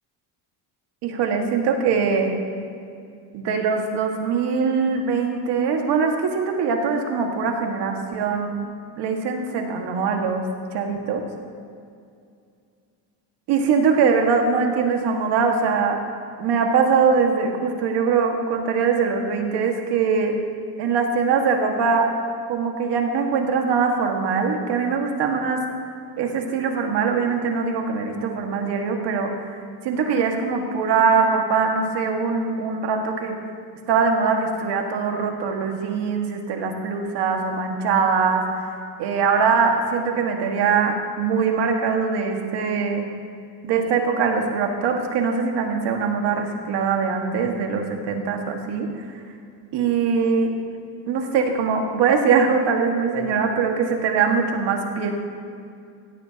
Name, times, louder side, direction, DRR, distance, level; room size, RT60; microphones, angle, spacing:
voice 1, 1.0-2.3 3.3-8.7 9.0-10.4 10.7-11.2 13.5-16.0 16.4-20.3 20.8-22.1 22.5-25.6 26.2-29.4 29.8-33.3 33.9-38.4 39.0-43.1 43.6-48.9 49.7-50.5 51.1-55.1, right 5 dB, 75° right, 2 dB, 1.9 m, -22 dB
17.0 x 15.5 x 2.9 m, 2.4 s
cardioid pair, 170°, 42 cm